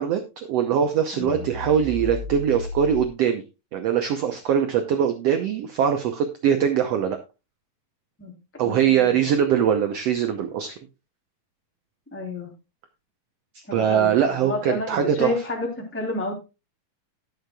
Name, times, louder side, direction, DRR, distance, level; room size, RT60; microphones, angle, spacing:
voice 1, 0.0-3.4 3.7-7.2 8.6-10.8 13.7-15.3, right 8 dB, 85° right, 6 dB, 1.4 m, -22 dB
voice 2, 1.1-1.4 8.2-8.3 8.6-9.1 12.1-12.5 13.7-14.2 14.4-16.4, left 2 dB, 5° left, 1 dB, 2.4 m, -30 dB
sound 1, 1.2-3.1, left 3 dB, 55° left, 3.3 m, -33 dB
18.5 x 6.5 x 2.3 m, 0.28 s
omnidirectional pair, 4.0 m